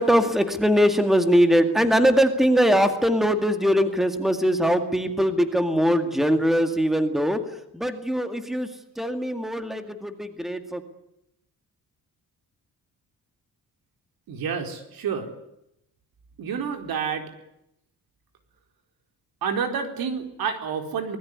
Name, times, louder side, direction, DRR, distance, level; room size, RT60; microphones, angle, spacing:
voice 1, 0.0-8.7 9.0-10.8, equal, ahead, 8 dB, 2.0 m, -21 dB
voice 2, 14.3-15.3 16.4-17.3 19.4-21.2, right 6 dB, 75° right, 7 dB, 4.4 m, -29 dB
24.5 x 20.5 x 9.6 m, 0.81 s
wide cardioid pair, 175°, 36 cm